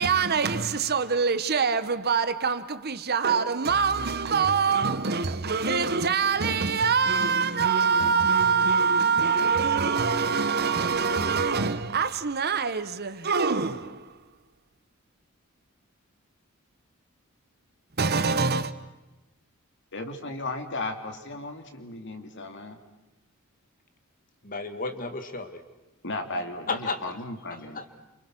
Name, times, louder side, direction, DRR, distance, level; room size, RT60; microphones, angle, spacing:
voice 1, 0.0-14.2 18.0-18.7, right 5 dB, 50° right, 1.2 m, -24 dB
voice 2, 19.9-22.8 26.0-27.8, left 2 dB, 60° left, 2.9 m, -35 dB
voice 3, 24.4-25.6 26.7-27.0 27.5-27.9, left 3 dB, 40° left, 2.2 m, -33 dB
29.5 x 27.5 x 6.2 m
head